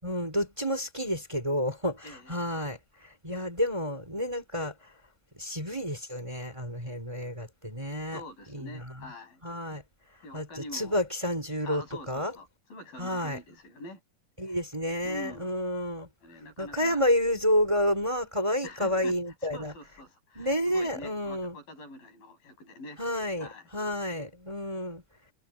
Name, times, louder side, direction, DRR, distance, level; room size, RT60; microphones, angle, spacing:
voice 1, 0.0-4.9 5.4-8.2 8.5-9.1 9.4-9.8 10.3-12.4 13.0-13.4 14.4-16.1 16.6-19.7 20.3-21.6 23.0-25.0, left 1 dB, 10° right, 4.1 m, -30 dB
voice 2, 2.0-2.6 8.1-9.4 10.2-11.0 11.6-14.0 14.5-14.6 15.0-15.5 16.2-17.0 18.6-19.2 19.5-23.0 23.4-23.7, left 1 dB, 90° left, 9.3 m, -45 dB
omnidirectional pair, 4.0 m